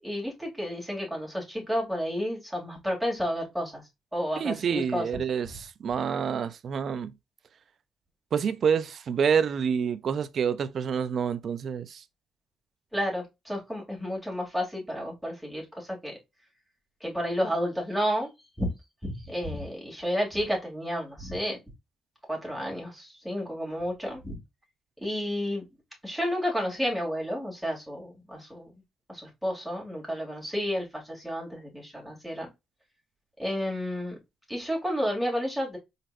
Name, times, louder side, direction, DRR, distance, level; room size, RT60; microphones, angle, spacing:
voice 1, 0.0-3.8 4.1-5.0 12.9-16.1 17.0-18.3 18.6-18.7 19.0-21.6 22.3-24.4 25.0-25.6 26.0-28.7 29.1-32.5 33.4-34.2 34.5-35.8, equal, ahead, 2.8 m, -31 dB
voice 2, 4.4-7.1 8.3-12.0, right 7 dB, 55° right, 0.5 m, -27 dB
4.3 x 4.0 x 2.6 m
cardioid pair, 90°, 0 cm